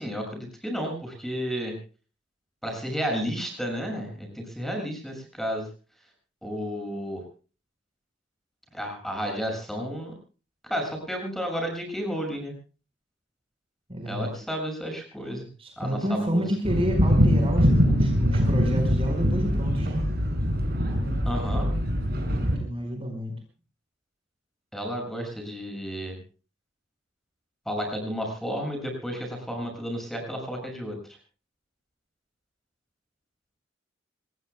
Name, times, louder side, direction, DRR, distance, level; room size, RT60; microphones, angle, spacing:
voice 1, 0.0-1.7 2.6-5.7 6.4-7.2 8.7-10.1 10.6-12.5 14.0-15.5 15.8-16.5 21.2-21.7 24.7-26.2 27.6-31.0, equal, ahead, 3 dB, 6.8 m, -32 dB
voice 2, 13.9-14.3 15.6-20.0 22.6-23.3, equal, 30° right, 3 dB, 4.7 m, -29 dB
sound 1, 16.6-22.6, equal, 55° right, 5.9 m, -23 dB
26.0 x 21.0 x 2.2 m, 0.36 s
head